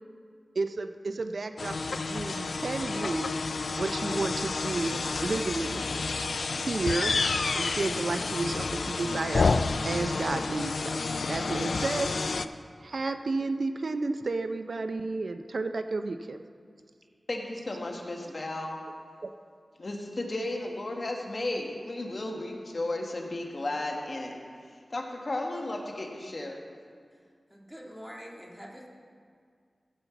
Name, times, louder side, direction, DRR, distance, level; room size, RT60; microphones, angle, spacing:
voice 1, 0.6-3.3 3.8-5.8 6.5-7.2 7.5-9.5 9.8-12.1 12.8-16.4 19.2-19.3, right 3 dB, 70° right, 9 dB, 0.5 m, -32 dB
sound 1, 1.6-12.5, left 4 dB, 75° left, 0.3 m, -30 dB
voice 2, 17.3-18.8 19.8-24.3 24.9-26.6, left 2 dB, 55° left, 1 dB, 1.6 m, -34 dB
voice 3, 27.5-28.9, equal, 10° right, -1 dB, 2.0 m, -45 dB
15.0 x 5.5 x 7.1 m, 2.1 s
wide cardioid pair, 55°, 0 cm